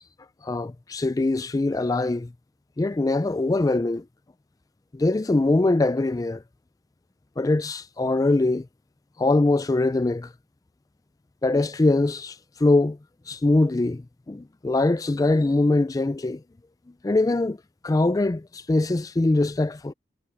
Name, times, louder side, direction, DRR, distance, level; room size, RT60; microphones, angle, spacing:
voice 1, 0.4-2.3 2.8-4.0 4.9-6.4 7.4-8.7 9.2-10.3 11.4-13.0 13.3-16.4 17.0-17.6 17.8-19.9, left 2 dB, 20° left, 0.3 m, -22 dB
head